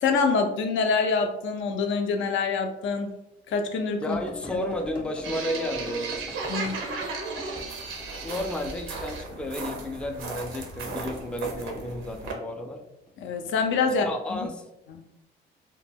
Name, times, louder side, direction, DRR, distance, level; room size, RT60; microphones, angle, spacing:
voice 1, 0.0-3.1 3.5-4.2 4.5-4.6 6.5-6.8 13.2-14.5 14.9-15.0, left 4 dB, 75° left, 6 dB, 0.5 m, -26 dB
voice 2, 4.0-6.1 8.2-12.8 13.9-14.7, left 1 dB, 5° left, 4 dB, 0.3 m, -32 dB
sound 1, 4.1-8.1 11.6-11.9 13.1-13.2, left 1 dB, 25° left, 0.7 m, -42 dB
sound 2, 5.2-12.3, right 3 dB, 85° right, 0.6 m, -35 dB
2.1 x 2.1 x 3.3 m, 0.90 s
cardioid pair, 90°, 20 cm